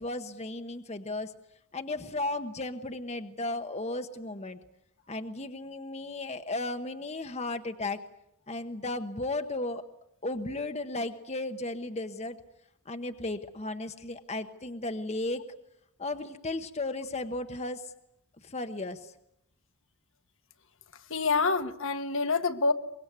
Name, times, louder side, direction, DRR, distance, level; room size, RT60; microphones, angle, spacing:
voice 1, 0.0-1.3 1.7-4.6 5.1-8.0 8.5-9.8 10.2-12.4 12.9-15.4 16.0-17.9 18.4-19.1, left 2 dB, 30° left, 1.0 m, -35 dB
voice 2, 21.1-22.7, left 4 dB, 55° left, 1.3 m, -27 dB
24.5 x 22.5 x 9.4 m
head